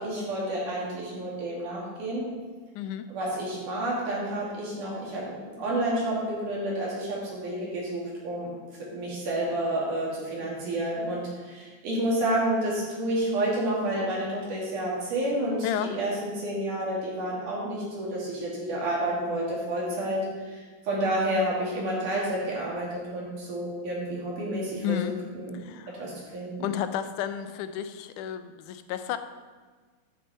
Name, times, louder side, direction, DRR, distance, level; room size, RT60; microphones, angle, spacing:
voice 1, 0.0-2.3 3.1-8.5 8.9-20.2 20.5-25.6 25.9-26.7, right 1 dB, 90° right, -5 dB, 4.2 m, -30 dB
voice 2, 2.8-3.1 15.6-15.9 24.8-25.1 25.5-26.0 26.6-29.2, left 10 dB, 90° left, 10 dB, 2.1 m, -32 dB
9.5 x 8.2 x 4.4 m, 1.4 s
omnidirectional pair, 3.5 m